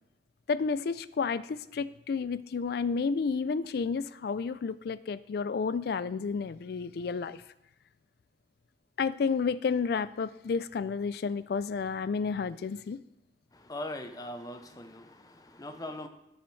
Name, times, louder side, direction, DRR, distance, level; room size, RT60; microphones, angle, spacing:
voice 1, 0.5-7.4 9.0-13.0, left 5 dB, 60° left, 16 dB, 0.3 m, -31 dB
voice 2, 13.5-16.1, left 1 dB, 20° left, 8 dB, 0.6 m, -41 dB
10.0 x 8.8 x 3.2 m, 0.86 s
head